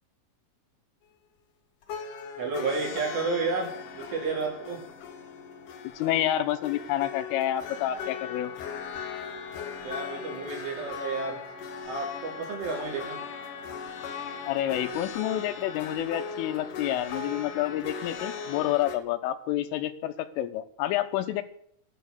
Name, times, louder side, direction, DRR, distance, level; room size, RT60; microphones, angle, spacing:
sound 1, 1.8-19.0, left 6 dB, 65° left, 2.1 m, -38 dB
voice 1, 2.4-4.8 9.8-11.4 11.9-13.2, right 4 dB, 70° right, -1 dB, 6.6 m, -31 dB
voice 2, 6.0-8.5 14.5-21.4, left 12 dB, 80° left, 9 dB, 3.5 m, -29 dB
15.0 x 11.5 x 6.7 m, 0.64 s
omnidirectional pair, 5.9 m